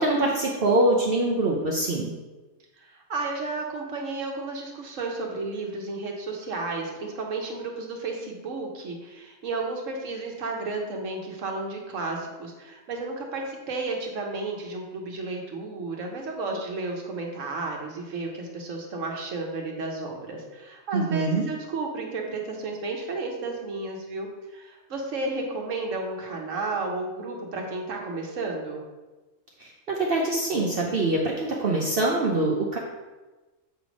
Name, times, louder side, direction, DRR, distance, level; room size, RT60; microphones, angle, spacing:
voice 1, 0.0-2.1 20.9-21.4 29.6-32.8, right 2 dB, 50° right, -2 dB, 0.9 m, -24 dB
voice 2, 2.8-28.8, right 3 dB, 75° right, 1 dB, 1.4 m, -32 dB
7.8 x 3.3 x 5.2 m, 1.2 s
omnidirectional pair, 1.3 m